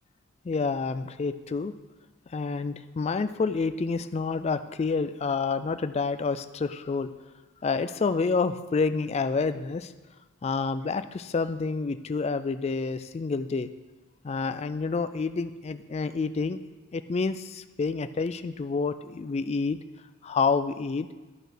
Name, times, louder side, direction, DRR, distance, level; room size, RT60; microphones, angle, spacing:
voice 1, 0.4-1.7 2.3-7.1 7.6-9.9 10.4-13.7 14.2-16.6 16.9-19.8 20.2-21.1, left 4 dB, 30° left, 12 dB, 0.3 m, -28 dB
10.5 x 5.5 x 5.9 m, 1.2 s
head